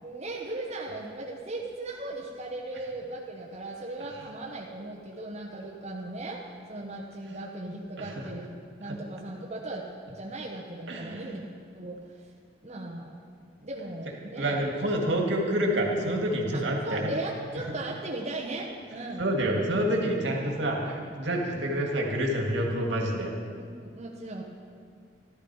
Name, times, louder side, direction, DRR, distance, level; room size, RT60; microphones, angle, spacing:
voice 1, 0.0-6.4 6.7-8.5 8.8-9.9 10.1-11.5 11.7-12.0 12.6-13.2 13.6-14.6 16.5-19.2 23.6-24.4, right 2 dB, 35° right, -2 dB, 1.0 m, -37 dB
voice 2, 8.0-8.3 8.8-9.0 10.9-11.3 14.4-17.1 17.7-17.8 19.2-23.3, right 1 dB, 65° right, 0 dB, 2.1 m, -28 dB
14.5 x 12.0 x 4.8 m, 2.1 s
head